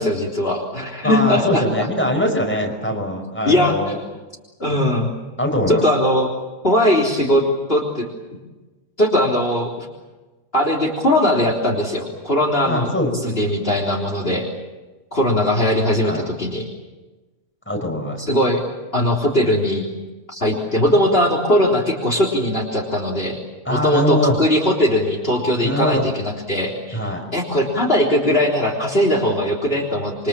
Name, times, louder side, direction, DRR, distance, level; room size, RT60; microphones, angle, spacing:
voice 1, 0.0-1.9 3.5-3.7 4.6-5.1 5.7-6.3 6.6-8.1 9.0-9.9 10.5-12.9 13.2-14.5 15.1-16.6 18.2-18.6 18.9-19.8 20.3-23.4 23.7-27.0 27.3-30.3, left 1 dB, 40° left, 1 dB, 3.9 m, -19 dB
voice 2, 1.0-4.0 4.7-5.0 5.4-5.8 12.6-13.7 16.1-16.2 17.7-18.2 23.7-24.4 25.6-26.1 26.9-27.2, left 1 dB, 10° left, 2 dB, 5.6 m, -22 dB
27.5 x 24.5 x 7.5 m, 1.2 s
omnidirectional pair, 1.5 m